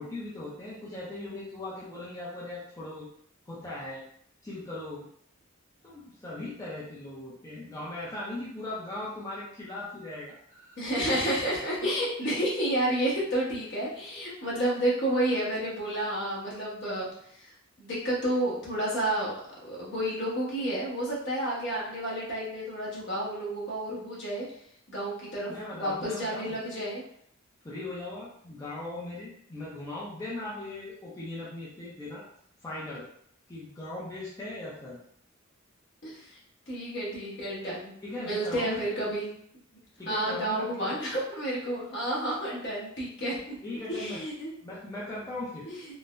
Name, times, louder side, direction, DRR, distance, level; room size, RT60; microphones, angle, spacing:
voice 1, 0.0-3.1 3.5-4.0 4.4-5.1 5.8-10.7 25.5-26.6 27.6-32.3 32.6-33.0 33.5-35.0 38.0-39.0 40.0-40.9 43.6-44.2 44.6-45.7, left 2 dB, 15° left, -7 dB, 0.5 m, -39 dB
voice 2, 10.8-17.1 17.4-17.5 17.8-19.3 19.6-24.5 24.9-27.0 36.0-36.4 36.7-39.3 40.1-43.6 43.9-44.5 45.7-45.8, right 1 dB, 60° left, -6 dB, 1.2 m, -30 dB
3.7 x 2.1 x 2.5 m, 0.67 s
head